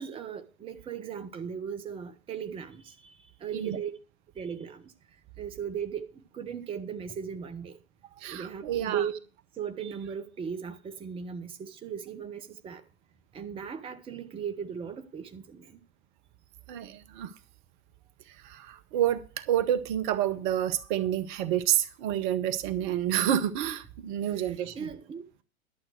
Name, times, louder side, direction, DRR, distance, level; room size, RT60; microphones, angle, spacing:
voice 1, 0.0-3.0 3.4-3.9 4.4-4.9 5.4-7.8 8.3-9.1 9.6-12.8 13.3-15.8 24.3-25.4, right 7 dB, 15° right, 0.9 m, -37 dB
voice 2, 8.2-9.0 16.7-17.3 18.4-24.7, right 11 dB, 35° right, 0.9 m, -29 dB
11.5 x 7.5 x 6.3 m
figure-of-eight pair, 100°, 41 cm